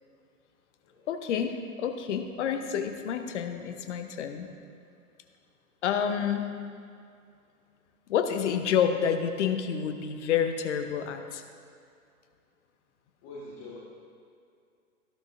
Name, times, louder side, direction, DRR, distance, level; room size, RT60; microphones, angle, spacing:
voice 1, 1.1-4.5 5.8-6.5 8.1-11.4, left 8 dB, 50° left, 7 dB, 1.0 m, -29 dB
voice 2, 13.2-13.8, left 2 dB, 30° left, -6 dB, 1.8 m, -44 dB
14.0 x 12.0 x 2.7 m, 2.4 s
figure-of-eight pair, 110°, 45 cm